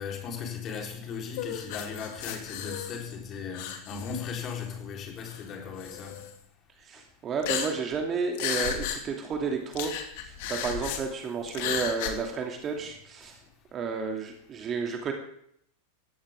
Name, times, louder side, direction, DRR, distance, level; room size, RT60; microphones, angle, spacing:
voice 1, 0.0-6.3 11.6-11.7, left 6 dB, 30° left, 4.1 m, -37 dB
sound 1, 1.3-3.2 3.5-4.7 5.3-5.4 5.8-6.3 7.4-8.0 8.3-9.0 9.3-9.4 9.7-11.0 11.5-12.1, left 9 dB, 50° left, 2.6 m, -34 dB
voice 2, 6.8-9.9 10.2-13.4 13.7-15.1, right 5 dB, 25° right, 2.7 m, -32 dB
18.0 x 16.0 x 3.7 m
figure-of-eight pair, 90°, 0 cm